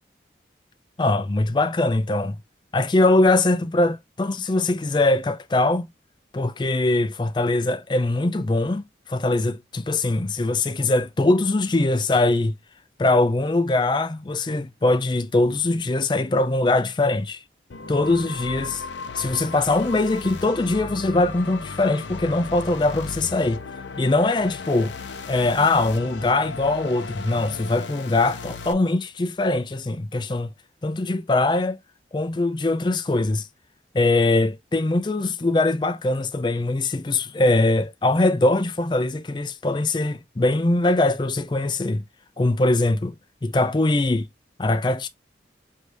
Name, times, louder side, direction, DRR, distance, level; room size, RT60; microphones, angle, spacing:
voice 1, 1.0-2.4 2.7-5.9 6.3-12.5 13.0-17.4 17.9-18.7 19.1-23.6 24.0-24.9 25.3-30.5 30.8-31.8 32.1-33.5 33.9-42.0 42.4-43.1 43.4-44.3 44.6-45.1, left 2 dB, 25° left, 0.4 m, -22 dB
sound 1, 17.7-28.7, left 4 dB, 85° left, 0.6 m, -36 dB
4.8 x 2.8 x 3.3 m
head